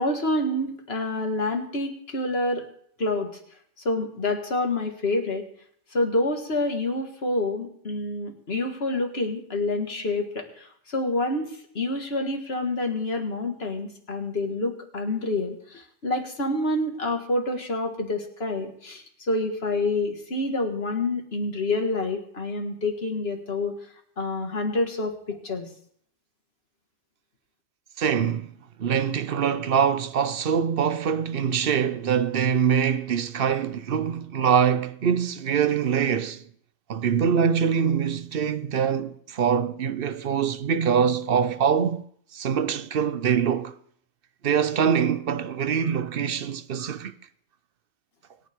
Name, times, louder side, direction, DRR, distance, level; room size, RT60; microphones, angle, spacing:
voice 1, 0.0-2.7 3.0-3.3 3.8-5.5 5.9-23.8 24.2-25.7, left 2 dB, 55° left, 2.1 m, -27 dB
voice 2, 28.0-28.5 28.8-36.4 36.9-42.0 42.3-43.7 44.4-47.1, right 7 dB, 55° right, 0.9 m, -24 dB
25.0 x 9.6 x 3.6 m
omnidirectional pair, 1.3 m